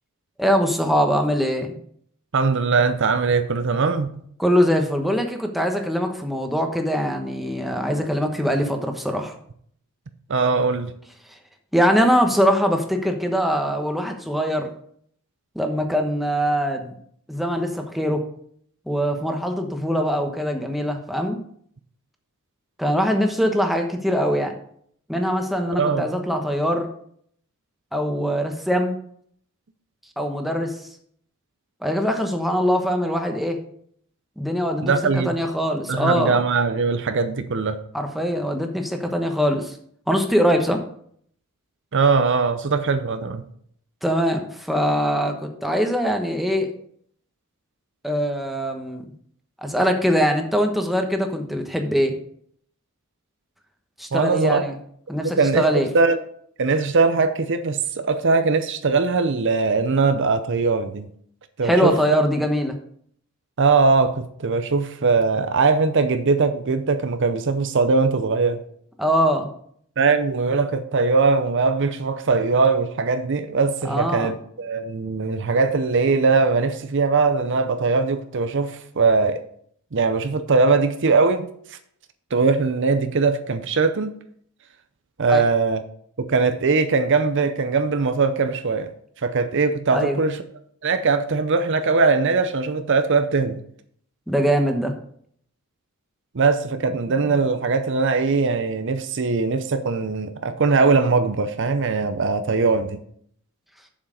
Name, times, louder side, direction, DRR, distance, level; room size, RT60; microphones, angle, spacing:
voice 1, 0.4-1.7 4.4-9.3 11.3-11.4 11.7-14.7 15.5-16.9 17.3-18.2 18.9-21.4 22.8-24.5 25.1-26.9 27.9-29.0 30.2-30.9 31.8-33.6 34.4-36.4 37.9-39.8 40.1-40.8 44.0-46.7 48.0-49.0 49.6-52.2 54.0-54.8 55.1-55.9 61.6-62.8 69.0-69.5 73.8-74.3 85.3-85.4 89.9-90.2 94.3-94.9, equal, ahead, 1.1 m, -22 dB
voice 2, 2.3-4.1 10.3-10.9 25.7-26.1 34.8-35.3 35.9-37.8 41.9-43.4 54.1-54.6 55.4-55.6 55.9-56.2 56.6-61.1 61.6-62.2 63.6-68.6 70.0-79.4 79.9-81.5 82.3-84.1 85.2-85.8 86.2-88.9 89.2-90.4 90.8-93.6 96.3-103.0, right 4 dB, 55° right, 0.6 m, -20 dB
7.3 x 7.2 x 5.1 m
head